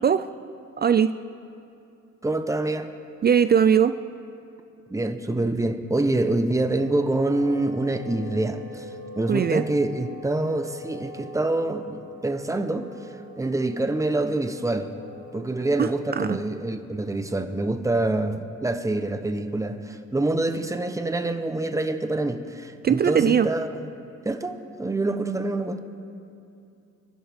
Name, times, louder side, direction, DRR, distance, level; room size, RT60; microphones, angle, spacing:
voice 1, 0.8-1.1 3.2-3.9 9.3-9.6 15.8-16.4 22.8-23.5, right 8 dB, 35° right, 12 dB, 0.4 m, -20 dB
voice 2, 2.2-2.9 4.9-12.9 13.4-14.9 15.3-23.8 24.2-25.8, right 2 dB, 10° right, 8 dB, 1.0 m, -26 dB
sound 1, 6.8-16.6, equal, 50° right, 2.9 m, -43 dB
25.5 x 11.0 x 3.6 m, 2.6 s
cardioid pair, 90°, 30 cm